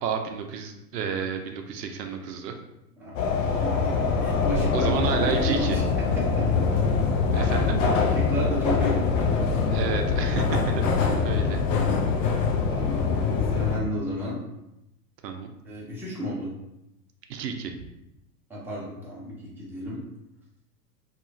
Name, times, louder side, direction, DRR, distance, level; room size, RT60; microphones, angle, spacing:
voice 1, 0.0-2.6 3.4-3.6 4.7-5.8 7.3-7.8 9.7-11.6 15.2-15.5 17.3-17.9, right 6 dB, 80° right, 5 dB, 0.6 m, -31 dB
voice 2, 3.0-5.8 6.1-6.5 8.1-9.5 12.7-13.2 13.5-14.4 15.6-16.5 18.5-20.0, equal, 5° right, -7 dB, 0.6 m, -33 dB
sound 1, 3.2-13.8, left 5 dB, 50° left, 0.5 m, -24 dB
2.8 x 2.4 x 2.6 m, 0.88 s
hypercardioid pair, 120°, 48 cm